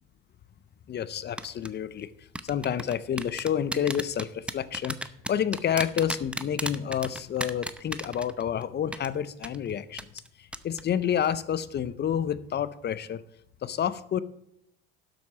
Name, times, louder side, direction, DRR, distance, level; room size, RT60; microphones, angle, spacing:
voice 1, 0.9-2.1 2.4-5.0 5.3-10.0 10.4-13.2 13.6-14.2, left 9 dB, 35° left, 16 dB, 0.7 m, -29 dB
sound 1, 1.4-1.7 2.3-8.6 8.9-9.1 9.4-9.6 10.0-10.3 10.5-10.8 11.1-11.3, right 1 dB, 5° right, 0.7 m, -33 dB
11.5 x 7.9 x 5.0 m, 0.75 s
hypercardioid pair, 85°, 30 cm